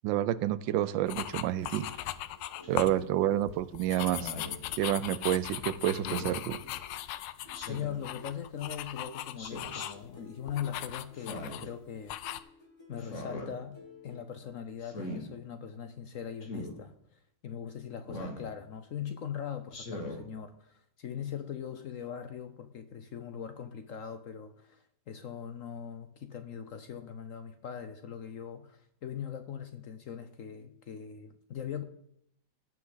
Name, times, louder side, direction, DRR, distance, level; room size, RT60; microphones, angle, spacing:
voice 1, 0.0-1.9 2.7-4.3 4.8-6.6, right 12 dB, 90° right, 16 dB, 1.3 m, -29 dB
sound 1, 0.6-14.2, equal, 15° left, 1.8 m, -54 dB
sound 2, 1.1-3.0 3.4-10.1 10.5-11.7 12.1-12.4, left 13 dB, 85° left, 1.3 m, -39 dB
Speech synthesizer, 2.6-3.0 4.1-4.6 6.0-6.3 7.5-8.0 9.4-9.9 11.1-11.7 13.0-13.5 14.8-15.2 16.4-16.7 18.1-18.5 19.7-20.2, left 1 dB, 40° left, 2.0 m, -40 dB
voice 2, 7.7-12.5 12.9-31.8, left 8 dB, 60° left, 8 dB, 0.9 m, -41 dB
17.5 x 6.0 x 3.9 m, 0.71 s
omnidirectional pair, 2.0 m